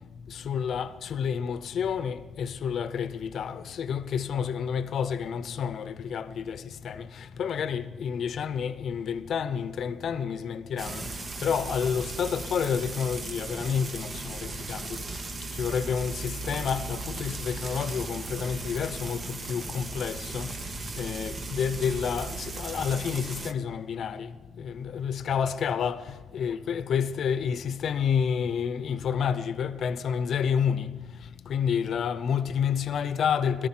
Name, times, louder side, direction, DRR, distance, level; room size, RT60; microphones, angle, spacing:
voice 1, 0.3-15.0 15.2-20.6 21.0-30.9 31.4-33.7, left 7 dB, 65° left, 0.8 m, -29 dB
Frying (food), 10.8-23.5, right 3 dB, 40° right, 1.2 m, -37 dB
17.0 x 13.5 x 5.9 m
cardioid pair, 90°, 0 cm